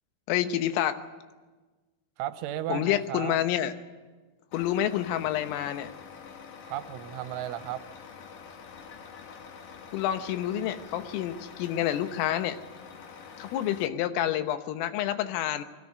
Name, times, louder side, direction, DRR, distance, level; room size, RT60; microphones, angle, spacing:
voice 1, 0.3-1.0 2.7-3.7 4.5-5.9 9.9-12.6 13.4-15.6, left 11 dB, 85° left, 9 dB, 3.7 m, -28 dB
voice 2, 2.2-3.4 6.7-7.8, right 13 dB, 80° right, 10 dB, 3.1 m, -34 dB
Truck, 4.5-13.9, left 6 dB, 60° left, 2.5 m, -46 dB
21.5 x 16.5 x 9.6 m, 1.3 s
omnidirectional pair, 5.8 m